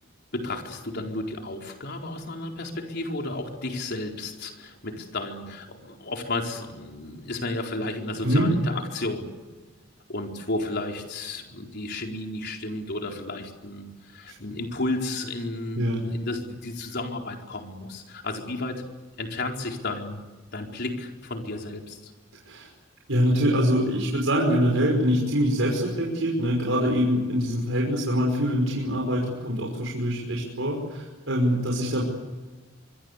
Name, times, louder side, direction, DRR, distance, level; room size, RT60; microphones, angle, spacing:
voice 1, 0.3-9.3 10.1-18.8 19.2-20.2 20.5-22.1, left 2 dB, 55° left, 2 dB, 4.5 m, -33 dB
voice 2, 23.1-32.0, equal, 80° right, -1 dB, 5.6 m, -24 dB
25.5 x 24.0 x 8.3 m, 1.3 s
head